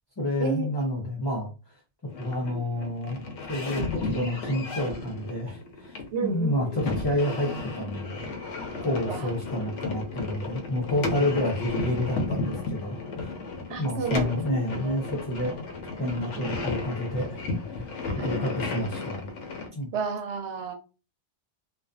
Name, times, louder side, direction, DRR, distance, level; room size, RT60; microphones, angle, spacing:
voice 1, 0.2-1.5 2.2-3.2 3.5-8.2 8.8-13.3 13.8-15.5 16.0-17.5 17.7-17.9 18.1-19.3 19.7-19.9, left 1 dB, 30° left, 0.4 m, -29 dB
sound 1, 2.1-19.7, left 3 dB, 90° left, 0.9 m, -34 dB
voice 2, 6.1-6.7 9.1-9.3 13.7-15.0 16.4-16.5 18.1-18.4 19.9-20.7, right 5 dB, 80° right, 0.9 m, -32 dB
2.5 x 2.2 x 2.2 m
omnidirectional pair, 1.2 m